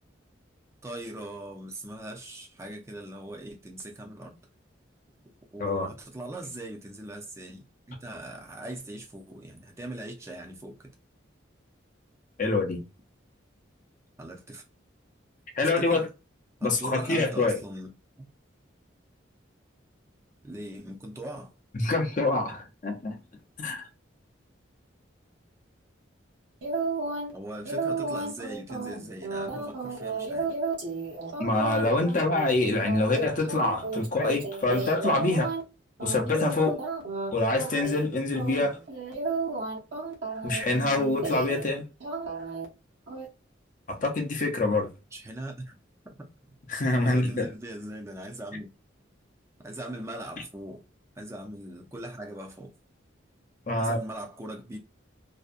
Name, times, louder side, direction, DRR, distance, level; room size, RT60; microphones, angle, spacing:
voice 1, 0.8-4.4 5.5-10.9 14.2-14.6 15.6-16.1 16.6-17.9 18.2-18.3 20.4-21.5 27.3-30.5 45.1-45.7 47.0-48.7 49.6-50.8 51.2-52.7 53.8-54.8, right 1 dB, 15° right, 0.5 m, -40 dB
voice 2, 5.6-5.9 12.4-12.8 15.5-16.1 16.6-17.6 21.7-23.2 23.6-23.9 31.4-35.5 36.0-36.8 37.3-38.8 40.4-41.9 43.9-44.9 46.7-47.5 53.7-54.0, left 2 dB, 40° left, 0.5 m, -26 dB
sound 1, 26.6-27.3 27.6-35.6 36.0-37.3 37.6-38.1 38.3-41.7 42.0-42.7 43.1-43.3, right 3 dB, 65° right, 0.8 m, -33 dB
2.6 x 2.2 x 2.4 m
head